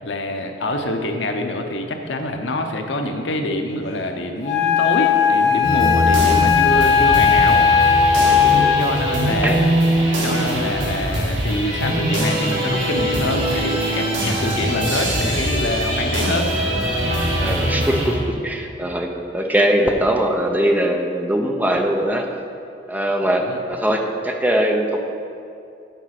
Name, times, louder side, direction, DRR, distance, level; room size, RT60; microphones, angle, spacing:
voice 1, 0.0-7.7 8.8-9.7 10.2-16.5 23.4-23.6, left 1 dB, 80° left, 4 dB, 0.8 m, -25 dB
Wind instrument woodwind instrument, 4.4-9.0, left 7 dB, 40° left, 2.0 m, -16 dB
sound 1, 5.6-18.1, right 1 dB, 85° right, 1.8 m, -22 dB
voice 2, 8.4-8.8 9.4-9.6 17.4-22.2 22.9-25.0, right 1 dB, 10° right, 2 dB, 0.6 m, -21 dB
9.1 x 4.9 x 5.9 m, 2.5 s
head